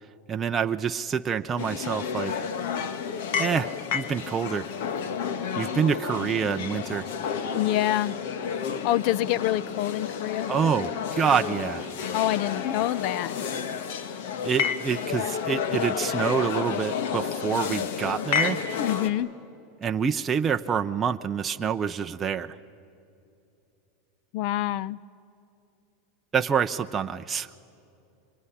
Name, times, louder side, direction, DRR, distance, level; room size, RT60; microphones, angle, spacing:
voice 1, 0.3-2.4 3.4-4.7 5.6-7.1 10.5-11.9 14.4-18.6 19.8-22.5 26.3-27.5, right 7 dB, 20° right, 7 dB, 0.6 m, -27 dB
sound 1, 1.6-19.1, left 7 dB, 65° left, 1.5 m, -30 dB
voice 2, 7.6-8.1 8.8-10.5 12.1-13.4 18.8-19.3 24.3-25.0, left 13 dB, 45° left, 21 dB, 0.5 m, -26 dB
25.0 x 23.5 x 10.0 m, 2.7 s
supercardioid pair, 155°, 0 cm